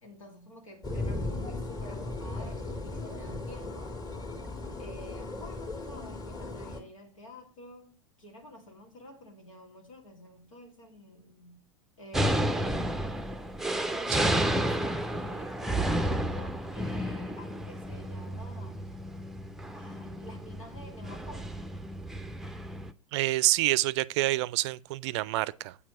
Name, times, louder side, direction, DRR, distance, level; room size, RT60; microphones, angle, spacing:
voice 1, 0.0-3.9 4.8-11.6 12.0-13.0 13.9-18.9 19.7-21.6, left 1 dB, 85° left, 2.2 m, -49 dB
sound 1, 0.8-6.8, left 2 dB, 20° left, 1.9 m, -37 dB
sound 2, 12.1-22.9, right 1 dB, ahead, 0.6 m, -31 dB
voice 2, 23.1-25.8, right 18 dB, 60° right, 0.4 m, -28 dB
8.6 x 4.5 x 5.8 m
hypercardioid pair, 85°, 17 cm